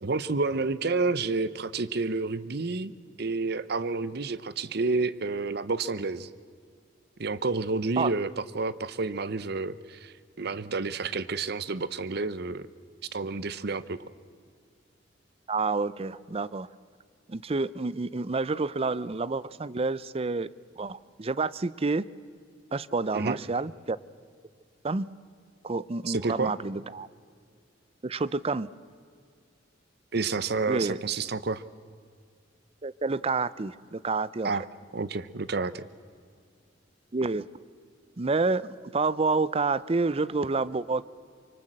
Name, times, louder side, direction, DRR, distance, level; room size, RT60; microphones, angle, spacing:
voice 1, 0.0-2.9 3.2-6.3 7.2-8.3 8.5-12.7 13.1-14.0 23.1-23.4 26.1-26.5 30.1-31.6 34.4-34.6 34.9-35.8, right 3 dB, 60° right, 16 dB, 0.8 m, -29 dB
voice 2, 15.5-16.7 17.3-20.5 20.8-22.1 22.7-24.0 24.8-25.1 25.6-27.1 28.0-28.7 30.7-31.0 32.8-34.5 37.1-37.5 38.2-41.0, right 3 dB, 30° right, 18 dB, 0.5 m, -28 dB
25.5 x 24.0 x 7.6 m, 2.1 s
head